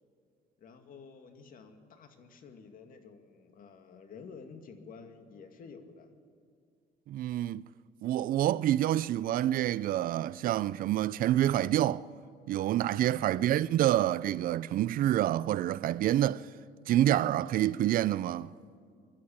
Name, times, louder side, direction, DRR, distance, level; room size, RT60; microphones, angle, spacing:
voice 1, 0.6-6.1 13.3-13.5, left 5 dB, 55° left, 2.2 m, -51 dB
voice 2, 7.1-7.6 8.0-12.1 12.5-16.5 16.9-18.5, right 13 dB, 55° right, 0.4 m, -27 dB
26.5 x 11.5 x 8.7 m
cardioid pair, 110°, 17 cm